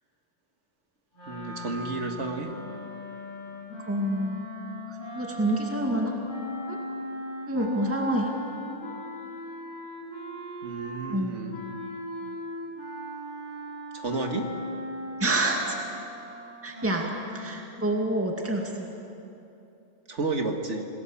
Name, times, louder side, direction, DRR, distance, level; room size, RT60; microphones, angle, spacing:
sound 1, 1.1-11.2 11.5-17.4, left 1 dB, 40° left, 6.5 m, -39 dB
voice 1, 1.3-2.5 10.6-11.6 13.9-14.5 20.1-20.8, right 3 dB, 65° right, 4 dB, 2.1 m, -31 dB
voice 2, 3.7-4.5 4.9-6.2 6.7-6.8 7.5-8.3 11.1-11.4 15.2-15.8 16.6-17.1 17.3-18.9, right 1 dB, 10° right, 0 dB, 2.1 m, -27 dB
27.0 x 19.0 x 7.2 m, 2.9 s
omnidirectional pair, 1.3 m